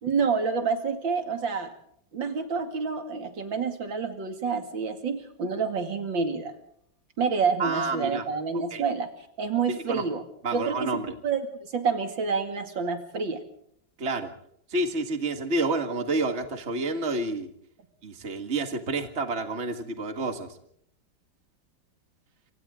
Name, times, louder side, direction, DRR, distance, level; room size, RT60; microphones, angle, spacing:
voice 1, 0.0-1.7 2.1-6.5 7.2-9.1 9.4-10.2 10.5-13.4, right 5 dB, 80° right, 6 dB, 3.1 m, -28 dB
voice 2, 7.6-8.2 8.7-8.9 9.7-10.0 10.4-11.2 14.0-14.3 14.7-17.5 18.0-20.6, right 2 dB, 35° right, 7 dB, 2.1 m, -29 dB
27.5 x 25.5 x 3.8 m, 0.66 s
omnidirectional pair, 2.0 m